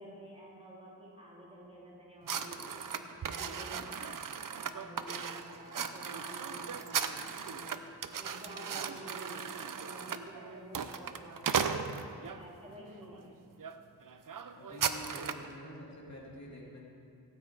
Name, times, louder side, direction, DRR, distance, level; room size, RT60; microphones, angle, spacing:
voice 1, 0.0-4.2 4.5-7.8 8.1-11.8 12.2-13.4, equal, 15° right, -5 dB, 2.6 m, -50 dB
sound 1, 2.3-12.4 13.0-13.2 13.6-13.8 14.0-15.5, right 7 dB, 65° right, 0.6 m, -37 dB
voice 2, 14.5-16.8, equal, 50° left, -4 dB, 2.5 m, -48 dB
16.0 x 8.8 x 4.7 m, 2.5 s
wide cardioid pair, 105°, 35 cm